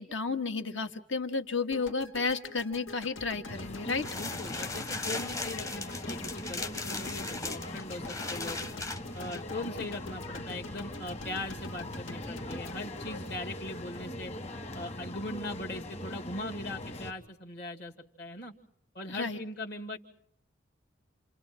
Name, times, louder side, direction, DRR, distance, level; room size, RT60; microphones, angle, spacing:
voice 1, 0.0-4.2 19.1-19.4, left 4 dB, 75° left, 6 dB, 1.9 m, -32 dB
sound 1, 1.7-13.9, left 3 dB, 90° left, 2.1 m, -46 dB
sound 2, 3.5-17.1, left 1 dB, 35° left, 1.6 m, -41 dB
sound 3, 3.9-9.4, left 3 dB, 15° left, 0.9 m, -38 dB
voice 2, 4.1-8.6 9.1-14.3 14.7-18.5 18.9-20.0, left 2 dB, 55° left, 2 dB, 2.3 m, -40 dB
29.0 x 28.5 x 4.4 m, 0.66 s
head